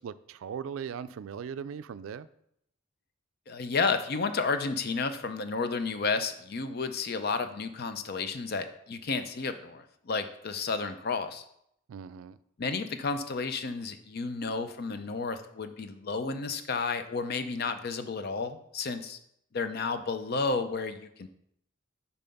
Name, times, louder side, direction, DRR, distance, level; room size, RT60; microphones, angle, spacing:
voice 1, 0.0-2.3 11.9-12.4, right 7 dB, 85° right, 14 dB, 0.3 m, -39 dB
voice 2, 3.5-11.4 12.6-19.2 19.5-21.3, left 4 dB, 50° left, 9 dB, 0.5 m, -32 dB
5.6 x 4.2 x 5.3 m, 0.74 s
head